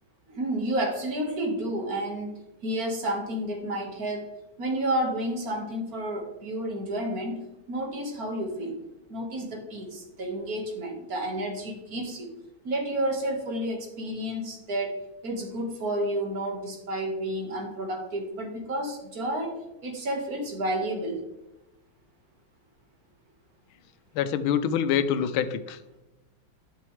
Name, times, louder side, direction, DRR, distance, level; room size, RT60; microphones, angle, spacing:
voice 1, 0.3-2.3 2.6-4.3 4.6-7.4 7.7-8.8 9.1-12.3 12.6-15.0 15.2-19.6 19.8-21.2, right 1 dB, 45° right, 2 dB, 1.9 m, -30 dB
voice 2, 24.1-25.8, left 8 dB, 80° left, 11 dB, 1.4 m, -25 dB
10.5 x 6.2 x 3.2 m, 0.96 s
omnidirectional pair, 2.3 m